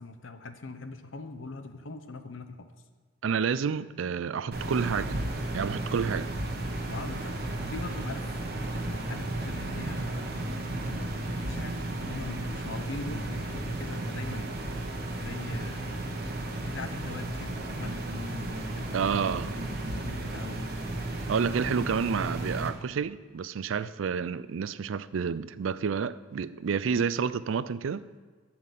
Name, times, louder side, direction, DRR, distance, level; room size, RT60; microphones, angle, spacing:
voice 1, 0.0-2.7 6.8-8.3 8.7-10.3 10.8-14.6 15.2-16.1 16.6-19.1 19.9-20.7 23.7-23.9 26.9-27.0, left 3 dB, 85° left, 0.9 m, -42 dB
voice 2, 3.2-5.2 5.5-6.3 18.9-19.5 21.3-28.0, right 6 dB, 90° right, 0.4 m, -29 dB
sound 1, 4.5-22.7, right 1 dB, 55° right, 1.3 m, -34 dB
11.0 x 5.9 x 7.4 m
head